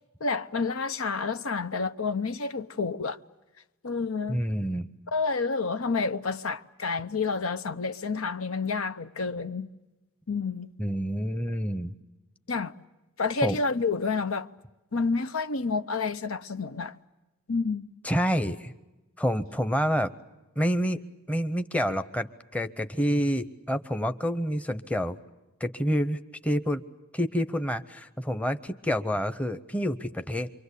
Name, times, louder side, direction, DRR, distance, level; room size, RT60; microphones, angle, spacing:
voice 1, 0.2-3.2 3.8-4.4 5.1-9.7 10.3-10.7 12.5-12.8 13.2-14.5 14.9-17.0 17.5-17.9, left 4 dB, 75° left, 0.9 m, -29 dB
voice 2, 4.3-4.9 10.8-11.9 13.4-13.6 18.0-18.7 19.2-20.1 20.6-21.0 21.3-25.2 25.6-26.8 27.1-30.5, equal, 5° left, 0.8 m, -28 dB
27.0 x 24.0 x 8.3 m
head